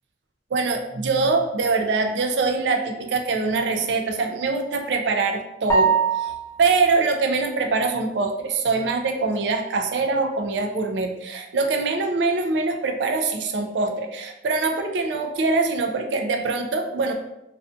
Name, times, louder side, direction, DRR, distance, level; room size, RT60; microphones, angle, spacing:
voice 1, 0.5-17.1, right 3 dB, 75° right, 4 dB, 0.4 m, -23 dB
sound 1, 5.7-6.8, right 5 dB, 15° left, 0.4 m, -21 dB
2.5 x 2.3 x 2.4 m, 0.91 s
head